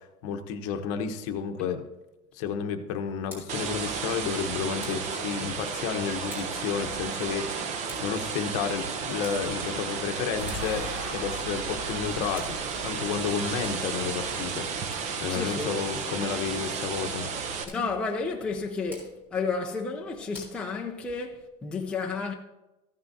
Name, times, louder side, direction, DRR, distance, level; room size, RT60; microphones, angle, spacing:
voice 1, 0.0-1.9 2.3-10.9 11.1-12.5 12.8-17.3, left 7 dB, 55° left, 1.0 m, -31 dB
Tick, 3.0-21.4, left 2 dB, 10° right, 3.8 m, -53 dB
sound 1, 3.5-17.6, right 5 dB, 35° right, 0.8 m, -33 dB
sound 2, 10.4-15.7, equal, 50° right, 3.0 m, -42 dB
voice 2, 15.3-15.7 17.7-22.3, left 4 dB, 5° left, 0.5 m, -31 dB
14.5 x 9.6 x 2.8 m
cardioid pair, 180°, 20 cm